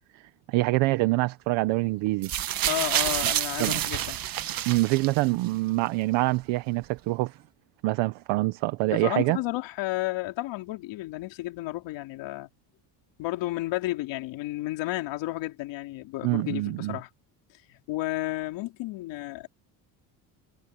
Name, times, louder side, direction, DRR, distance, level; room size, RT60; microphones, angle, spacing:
voice 1, 0.5-2.3 3.6-3.8 4.7-7.4 7.8-9.4 16.2-17.0, right 21 dB, 85° right, 1.2 m, -25 dB
sound 1, 2.2-5.5 6.4-6.5, right 12 dB, 50° right, 1.6 m, -28 dB
voice 2, 2.7-4.2 8.9-12.5 13.2-17.1 17.7-19.5, left 18 dB, 75° left, 3.8 m, -32 dB
cardioid pair, 130°, 44 cm